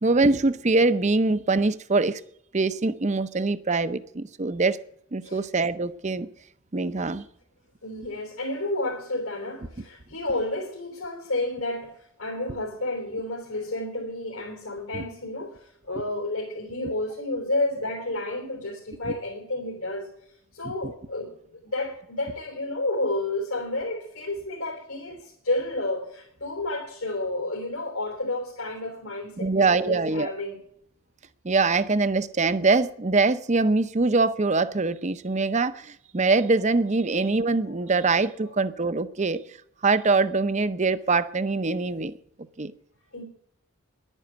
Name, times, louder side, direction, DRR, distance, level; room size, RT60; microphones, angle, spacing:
voice 1, 0.0-2.2 2.5-4.8 5.1-6.3 6.7-7.3 14.9-15.0 20.8-20.9 29.4-30.3 31.4-39.4 39.8-42.1 42.6-42.7, right 3 dB, 35° right, 0.7 m, -23 dB
voice 2, 7.8-20.1 20.5-30.6 38.4-38.5 43.1-43.2, left 2 dB, 80° left, 3.7 m, -31 dB
11.0 x 9.9 x 9.2 m
head